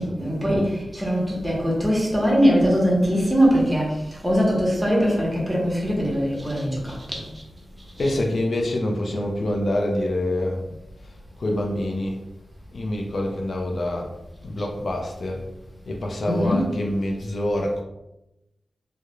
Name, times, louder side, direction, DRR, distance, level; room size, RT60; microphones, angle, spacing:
voice 1, 0.0-7.4 8.0-8.1 14.5-14.7 16.2-16.7, equal, 10° right, -4 dB, 0.8 m, -22 dB
voice 2, 8.0-10.8 11.4-12.2 12.7-14.1 14.4-15.4 15.9-17.8, left 1 dB, 65° left, 0 dB, 0.4 m, -26 dB
2.3 x 2.0 x 2.9 m, 0.91 s
wide cardioid pair, 105°, 0 cm